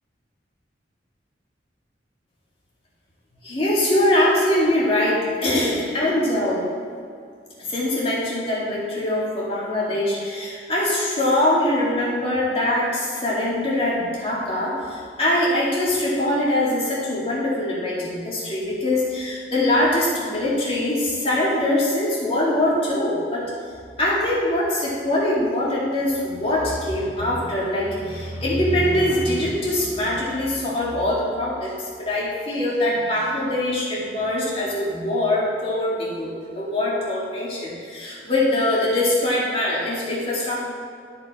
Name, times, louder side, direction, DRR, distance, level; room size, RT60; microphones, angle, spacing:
voice 1, 3.4-6.7 7.7-23.5 24.0-40.7, left 1 dB, 30° left, -6 dB, 2.1 m, -23 dB
12.5 x 4.8 x 4.3 m, 2.2 s
head